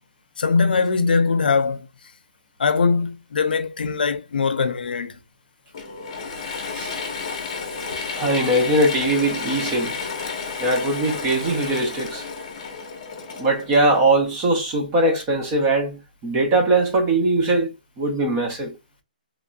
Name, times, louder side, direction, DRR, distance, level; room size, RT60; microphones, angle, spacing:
voice 1, 0.4-1.9 2.6-5.2, left 4 dB, 75° left, 0.6 m, -21 dB
Mechanisms / Drill, 5.7-14.3, left 4 dB, 35° left, 0.8 m, -31 dB
voice 2, 8.1-9.9 10.6-12.2 13.4-17.7 18.0-18.7, right 2 dB, 15° right, 0.5 m, -20 dB
3.1 x 2.6 x 2.2 m
hypercardioid pair, 180°, 5 cm